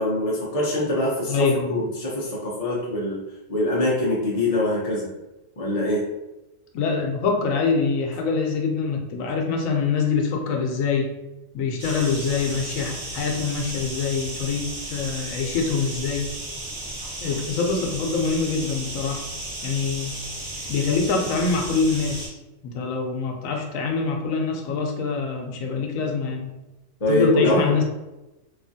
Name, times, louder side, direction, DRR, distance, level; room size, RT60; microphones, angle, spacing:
voice 1, 0.0-3.2 3.5-5.1 5.6-6.0 27.0-27.8, left 1 dB, 45° left, -5 dB, 0.5 m, -23 dB
voice 2, 1.3-1.8 6.7-11.1 11.5-16.3 17.2-19.2 19.6-20.1 20.7-22.4 22.6-26.5 27.1-27.8, left 5 dB, 80° left, 2 dB, 1.0 m, -25 dB
sound 1, 11.8-22.3, right 1 dB, 80° right, 1.6 m, -34 dB
3.1 x 2.3 x 2.6 m, 1.0 s
omnidirectional pair, 1.4 m